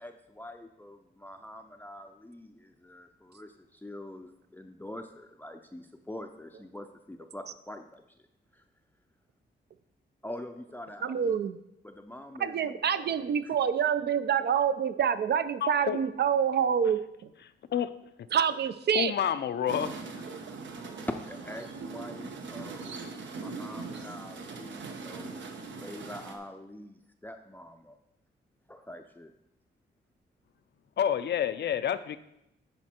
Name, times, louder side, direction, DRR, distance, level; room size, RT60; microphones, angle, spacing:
voice 1, 0.0-8.0 8.5-8.6 10.2-11.4 11.8-13.6 21.1-23.0 23.3-28.0 28.7-29.3, left 1 dB, 10° left, 5 dB, 0.5 m, -44 dB
voice 2, 11.0-11.6 12.4-17.0 18.3-19.1 20.3-20.4, right 8 dB, 60° right, 12 dB, 0.5 m, -27 dB
voice 3, 15.6-16.0 17.7-17.9 18.9-19.9 31.0-32.2, left 9 dB, 65° left, 13 dB, 0.5 m, -28 dB
sound 1, 19.7-26.4, right 4 dB, 80° right, 0.9 m, -41 dB
11.0 x 4.4 x 4.3 m, 0.83 s
cardioid pair, 95°, 19 cm